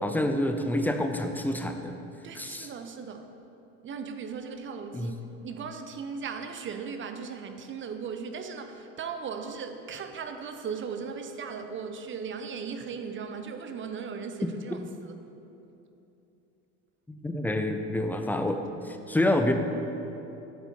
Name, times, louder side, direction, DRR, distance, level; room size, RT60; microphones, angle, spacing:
voice 1, 0.0-2.0 2.3-2.7 4.9-5.1 17.1-19.5, left 1 dB, 5° left, 5 dB, 0.4 m, -28 dB
voice 2, 2.2-3.3 3.8-5.2 5.4-15.1, right 6 dB, 35° right, 7 dB, 0.6 m, -37 dB
9.2 x 4.3 x 4.5 m, 2.9 s
supercardioid pair, 85°, 36 cm